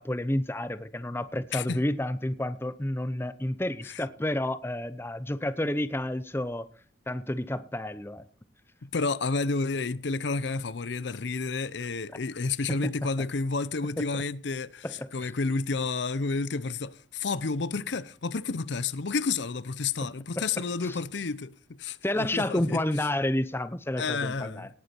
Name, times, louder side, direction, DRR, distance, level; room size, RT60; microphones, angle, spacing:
voice 1, 0.0-6.7 7.1-8.2 12.7-12.9 14.0-14.1 14.8-15.3 20.4-20.5 20.8-21.0 22.0-24.7, left 1 dB, 10° left, 0.7 m, -30 dB
voice 2, 8.8-21.5 21.8-22.8 24.0-24.7, left 4 dB, 65° left, 0.6 m, -30 dB
19.0 x 8.3 x 4.4 m
head